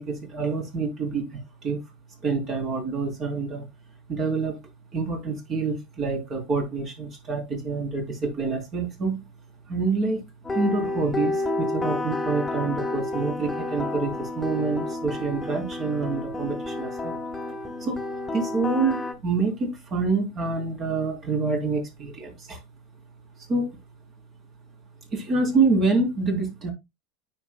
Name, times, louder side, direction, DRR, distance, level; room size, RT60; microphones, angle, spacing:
voice 1, 0.0-1.8 2.2-3.6 4.1-4.5 4.9-9.3 9.7-17.2 17.8-18.0 18.3-22.6 23.5-23.8 25.1-26.7, right 4 dB, 40° right, 3.4 m, -27 dB
sound 1, 10.4-19.1, left 2 dB, 15° left, 1.3 m, -30 dB
9.7 x 5.6 x 2.2 m
hypercardioid pair, 85°, 0 cm